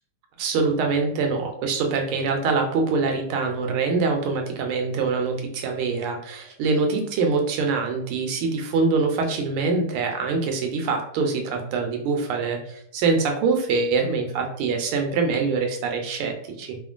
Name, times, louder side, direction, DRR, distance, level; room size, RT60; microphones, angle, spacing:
voice 1, 0.4-16.8, right 4 dB, 85° right, 3 dB, 1.5 m, -24 dB
3.6 x 2.1 x 2.4 m, 0.67 s
omnidirectional pair, 2.3 m